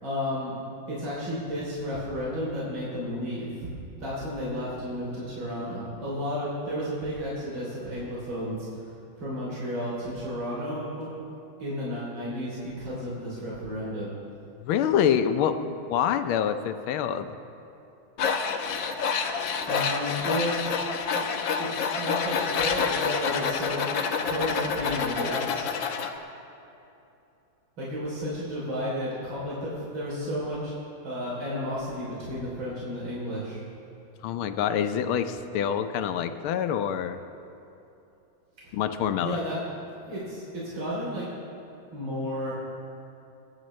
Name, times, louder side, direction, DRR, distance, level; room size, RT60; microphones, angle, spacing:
voice 1, 0.0-0.5 0.9-3.7 4.0-8.7 9.2-11.1 11.6-14.2 19.7-20.8 21.0-21.3 21.6-23.8 24.2-25.7 27.8-30.7 31.0-33.6 39.2-39.6 40.1-41.3 41.9-42.5, equal, 70° right, -7 dB, 4.0 m, -32 dB
voice 2, 14.6-17.3 34.2-37.2 38.7-39.4, left 8 dB, 85° left, 9 dB, 1.5 m, -26 dB
Tools, 18.2-26.1, left 6 dB, 70° left, 1.5 m, -28 dB
29.0 x 10.0 x 3.2 m, 2.8 s
omnidirectional pair, 2.3 m